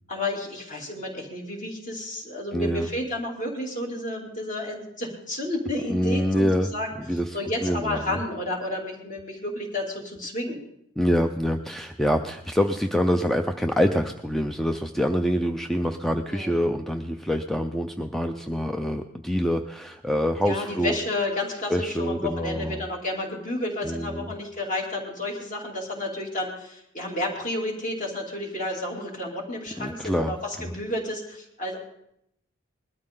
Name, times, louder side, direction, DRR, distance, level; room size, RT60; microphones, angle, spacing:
voice 1, 0.1-6.9 7.3-10.6 16.3-16.5 20.4-31.8, left 1 dB, 40° left, 0 dB, 3.0 m, -31 dB
voice 2, 2.5-2.9 5.9-6.7 7.1-7.4 7.6-8.1 11.0-20.9 21.7-22.8 23.8-24.3 29.8-30.7, equal, ahead, 6 dB, 0.5 m, -25 dB
20.5 x 13.0 x 3.8 m, 0.78 s
head